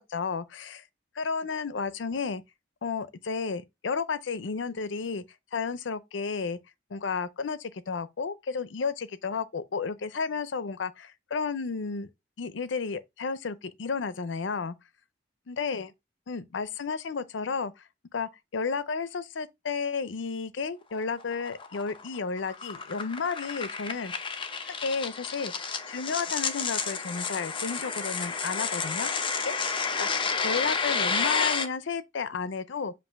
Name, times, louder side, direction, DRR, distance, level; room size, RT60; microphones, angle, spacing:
voice 1, 0.0-0.8 1.2-2.4 2.8-5.2 5.5-6.6 6.9-12.1 12.4-14.7 15.5-15.9 16.3-17.7 18.1-24.1 24.6-25.5 25.9-29.1 29.4-29.5 30.0-30.1 30.4-32.9, left 5 dB, 80° left, 0.6 m, -32 dB
sound 1, 20.9-31.7, left 5 dB, 25° left, 0.7 m, -31 dB
7.7 x 2.6 x 5.7 m
head